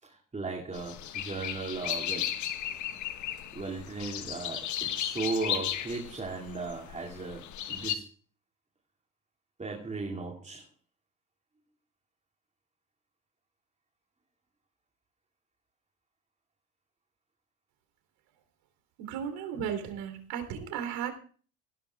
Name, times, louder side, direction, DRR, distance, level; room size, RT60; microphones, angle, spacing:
voice 1, 0.0-2.3 3.5-8.1 9.6-10.7, right 3 dB, 15° right, -1 dB, 2.5 m, -36 dB
sound 1, 0.7-8.0, left 11 dB, 40° left, 1.5 m, -35 dB
voice 2, 19.0-21.1, right 8 dB, 55° right, 7 dB, 3.4 m, -35 dB
19.5 x 16.0 x 2.4 m, 0.41 s
figure-of-eight pair, 70°, 43 cm